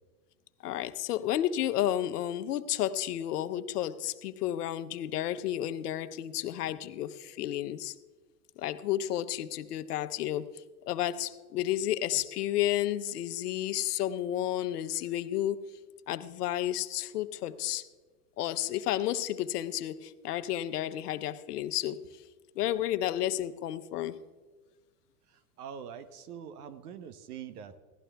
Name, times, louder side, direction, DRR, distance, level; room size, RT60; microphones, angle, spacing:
voice 1, 0.6-7.9 8.6-15.6 16.1-17.9 18.4-22.0 22.6-24.2, left 12 dB, 80° left, 12 dB, 0.8 m, -32 dB
voice 2, 25.6-27.8, right 8 dB, 75° right, 13 dB, 1.1 m, -43 dB
17.0 x 12.0 x 3.4 m, 1.4 s
hypercardioid pair, 125°, 46 cm